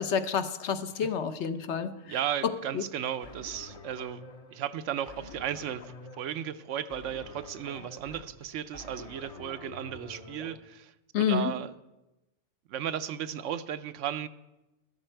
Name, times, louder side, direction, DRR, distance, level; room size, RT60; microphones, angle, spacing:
voice 1, 0.0-1.9 2.4-2.8 11.1-11.5, left 7 dB, 70° left, 10 dB, 1.0 m, -29 dB
voice 2, 2.0-4.2 4.5-11.7 12.7-14.3, right 10 dB, 85° right, 12 dB, 1.0 m, -35 dB
sound 1, 3.2-10.6, left 2 dB, 35° left, 0.8 m, -47 dB
12.5 x 12.5 x 4.4 m, 0.99 s
omnidirectional pair, 1.3 m